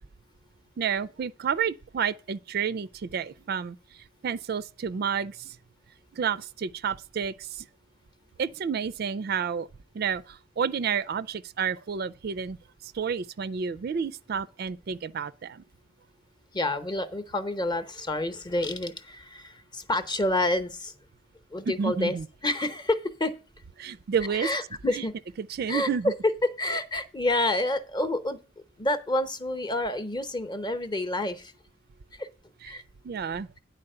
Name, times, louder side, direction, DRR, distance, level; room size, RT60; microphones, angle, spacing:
voice 1, 0.8-3.8 4.2-5.6 6.1-7.7 8.4-9.7 9.9-12.6 12.8-15.6 21.8-22.2 23.8-24.5 24.9-25.0 25.6-26.1 32.6-32.7 33.0-33.5, right 7 dB, 50° right, 0.3 m, -30 dB
voice 2, 16.5-20.9 21.5-22.1 22.4-23.3 24.2-25.1 25.7-26.1 26.6-28.4 28.8-31.5 32.1-32.3 32.7-32.8, left 1 dB, 20° left, 0.8 m, -28 dB
9.8 x 4.3 x 6.6 m
head